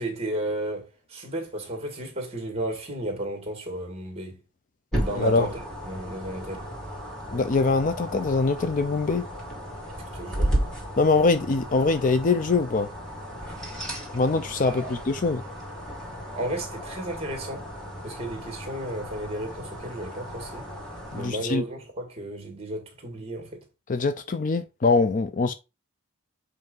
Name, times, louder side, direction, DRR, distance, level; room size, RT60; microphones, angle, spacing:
voice 1, 0.0-4.4 5.0-5.6 5.9-6.7 10.1-10.6 14.6-15.0 16.4-17.7 18.0-20.7 21.1-23.6, right 1 dB, 25° right, 2.2 m, -33 dB
sound 1, 4.9-21.3, equal, 5° left, 2.0 m, -34 dB
voice 2, 5.1-5.5 7.3-9.3 11.0-12.9 14.1-15.4 21.1-21.6 23.9-25.5, left 3 dB, 35° left, 0.5 m, -23 dB
7.8 x 2.7 x 5.4 m
head